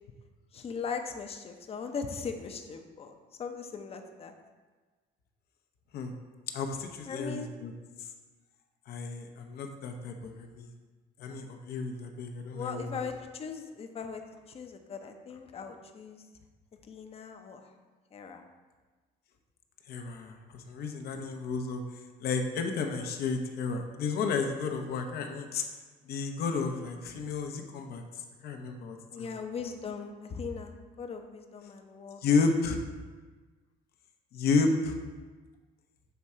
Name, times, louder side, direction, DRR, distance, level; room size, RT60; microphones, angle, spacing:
voice 1, 0.5-3.1 3.4-4.3 7.1-7.5 12.5-14.2 14.5-16.2 16.9-17.7 18.1-18.4 29.1-32.2, left 5 dB, 35° left, 5 dB, 0.6 m, -39 dB
voice 2, 6.5-7.7 8.9-10.7 11.2-13.0 19.9-21.8 22.2-25.7 26.1-28.0 28.4-29.3 32.2-32.8 34.3-35.0, left 4 dB, 65° left, 5 dB, 0.8 m, -32 dB
6.9 x 3.6 x 4.3 m, 1.3 s
cardioid pair, 110°, 17 cm